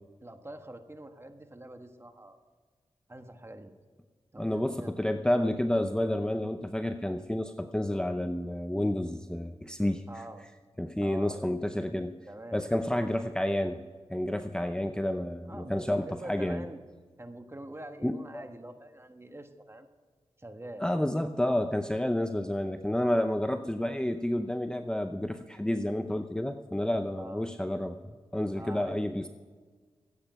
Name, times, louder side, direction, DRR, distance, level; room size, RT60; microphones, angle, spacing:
voice 1, 0.2-2.4 3.1-3.7 4.3-5.0 10.1-10.4 11.0-11.7 12.2-13.0 15.5-16.8 17.2-19.9 20.4-20.9 27.2-27.5 28.5-29.0, right 1 dB, 25° right, 6 dB, 1.5 m, -45 dB
voice 2, 4.4-10.0 10.8-12.1 12.5-13.8 14.1-16.7 18.0-18.4 20.8-28.0 28.3-29.3, left 1 dB, 5° left, 8 dB, 0.6 m, -30 dB
15.0 x 8.9 x 5.7 m, 1.5 s
cardioid pair, 50°, 11 cm